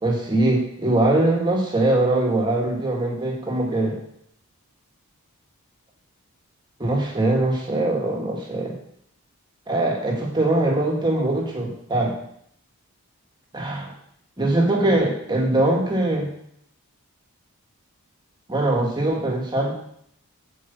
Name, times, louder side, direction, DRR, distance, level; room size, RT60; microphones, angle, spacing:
voice 1, 0.0-4.0 6.8-8.8 9.7-12.2 13.5-13.9 14.4-16.3 18.5-19.7, right 2 dB, 20° right, -1 dB, 1.7 m, -22 dB
7.7 x 4.8 x 6.9 m, 0.71 s
head